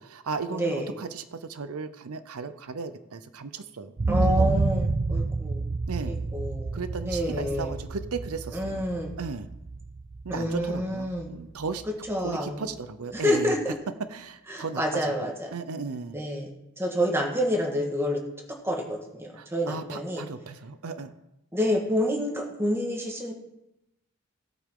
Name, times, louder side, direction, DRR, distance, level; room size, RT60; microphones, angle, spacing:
voice 1, 0.0-3.9 4.2-4.6 5.9-6.2 6.7-8.8 9.2-9.5 10.2-11.8 12.2-13.6 14.1-16.2 19.4-21.1, right 4 dB, 90° right, 12 dB, 0.7 m, -36 dB
voice 2, 0.5-0.9 4.1-5.6 6.1-7.7 8.5-9.1 10.3-11.3 12.1-12.6 13.1-13.7 14.5-15.5 16.1-16.5 16.8-18.2 18.6-20.2 21.5-23.3, equal, 10° right, 1 dB, 1.6 m, -28 dB
sound 1, 4.0-11.9 12.3-12.4, right 3 dB, 35° right, 0.4 m, -29 dB
16.5 x 8.6 x 3.8 m, 0.91 s
head